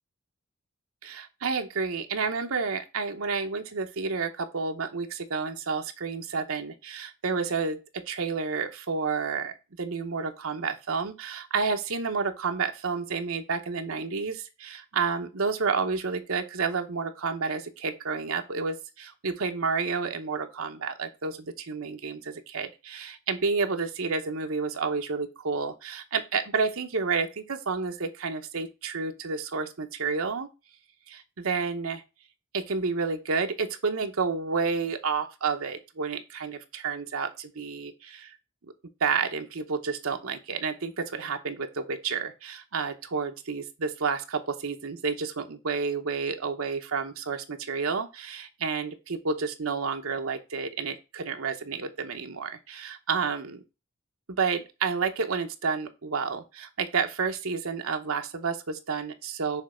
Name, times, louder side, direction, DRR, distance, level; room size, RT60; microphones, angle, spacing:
voice 1, 1.0-30.5 31.1-32.0 32.5-38.4 39.0-53.6 54.3-59.6, right 5 dB, 75° right, 0.9 m, -30 dB
6.4 x 3.2 x 4.9 m
head